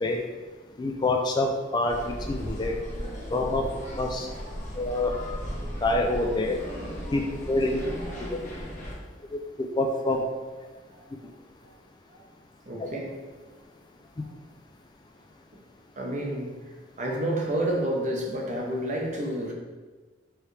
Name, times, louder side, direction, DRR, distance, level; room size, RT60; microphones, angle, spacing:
voice 1, 0.8-2.8 3.3-3.7 4.0-4.3 4.8-5.1 5.8-6.6 7.1-7.2 7.5-7.8 8.3-8.4 9.3-9.4 9.8-10.2 12.8-12.9, left 2 dB, 25° left, 3 dB, 0.3 m, -26 dB
sound 1, 1.9-8.9, equal, 40° left, 1.0 m, -36 dB
voice 2, 12.7-13.2 16.0-16.5 17.0-19.5, right 1 dB, 45° right, -1 dB, 0.8 m, -29 dB
4.6 x 3.3 x 3.2 m, 1.3 s
head